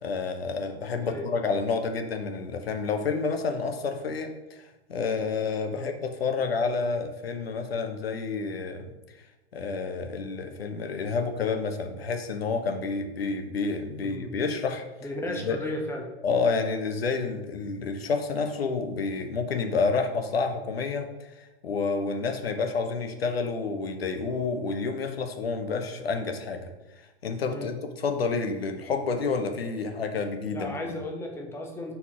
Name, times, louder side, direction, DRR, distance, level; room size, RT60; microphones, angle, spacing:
voice 1, 0.0-8.9 9.5-14.8 15.3-15.6 16.2-30.9, left 4 dB, 65° left, 6 dB, 0.9 m, -29 dB
voice 2, 14.0-14.3 15.0-16.1 27.5-27.7 30.5-31.9, left 1 dB, 5° left, 1 dB, 0.8 m, -35 dB
4.3 x 4.1 x 5.6 m, 1.1 s
figure-of-eight pair, 105°, 33 cm